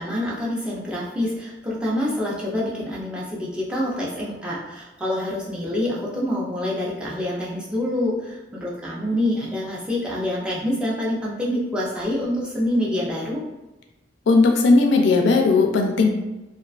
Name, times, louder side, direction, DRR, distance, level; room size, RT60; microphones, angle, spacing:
voice 1, 0.0-13.4, left 1 dB, 5° right, -6 dB, 0.4 m, -26 dB
voice 2, 14.3-16.1, left 3 dB, 75° left, 3 dB, 0.3 m, -17 dB
2.3 x 2.3 x 2.3 m, 1.1 s
head